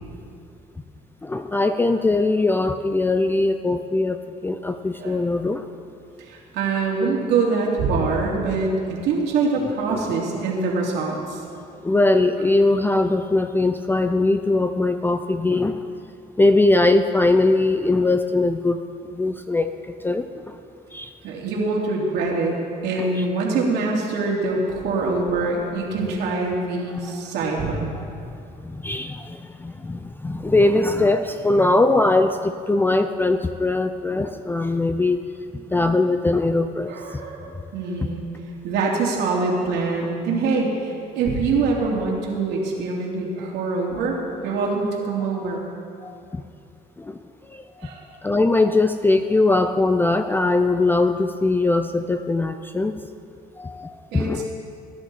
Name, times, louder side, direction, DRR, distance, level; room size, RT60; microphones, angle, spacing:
voice 1, 1.2-5.7 11.8-15.9 16.4-18.8 19.1-19.7 20.0-20.6 20.9-21.1 23.2-23.3 28.6-35.2 35.5-37.0 46.0-46.4 47.0-47.2 47.5-47.9 48.2-53.0 53.6-54.5, left 2 dB, 10° left, 8 dB, 0.4 m, -21 dB
voice 2, 6.2-11.4 21.2-22.6 22.8-27.9 36.9-38.3 38.6-45.7 47.8-48.0 54.1-54.5, right 3 dB, 85° right, -2 dB, 2.8 m, -24 dB
18.0 x 11.0 x 4.2 m, 2.5 s
cardioid pair, 110°, 17 cm